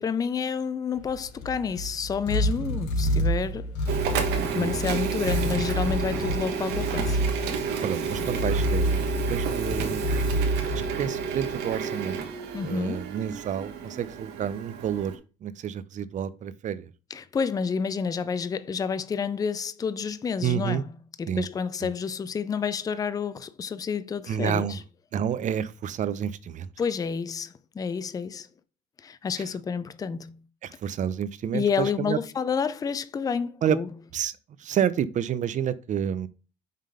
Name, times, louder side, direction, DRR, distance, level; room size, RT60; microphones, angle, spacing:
voice 1, 0.0-4.2 4.5-7.2 12.5-13.0 17.1-20.9 21.2-24.8 26.8-28.5 29.0-30.4 31.5-33.9, left 6 dB, 20° left, 0.4 m, -29 dB
sound 1, 1.0-11.5, equal, 80° left, 2.6 m, -28 dB
Printer, 3.9-15.2, right 6 dB, 75° right, 1.2 m, -31 dB
voice 2, 7.8-10.1 10.7-12.2 12.6-16.9 20.4-20.8 21.3-21.4 21.8-21.9 24.3-24.8 25.1-26.7 30.6-32.2 33.6-33.8 34.1-34.3 34.6-36.3, right 9 dB, 45° right, 0.6 m, -29 dB
5.6 x 3.7 x 4.9 m
cardioid pair, 110°, 17 cm